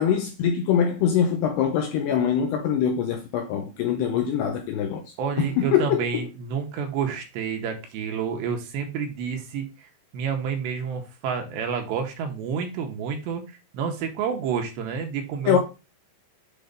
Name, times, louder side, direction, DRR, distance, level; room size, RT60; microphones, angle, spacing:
voice 1, 0.0-5.0 5.4-6.0 15.5-15.6, left 8 dB, 80° left, 2.4 m, -23 dB
voice 2, 5.2-9.9 10.1-15.6, right 7 dB, 75° right, 2.9 m, -29 dB
8.0 x 3.1 x 5.1 m
omnidirectional pair, 5.5 m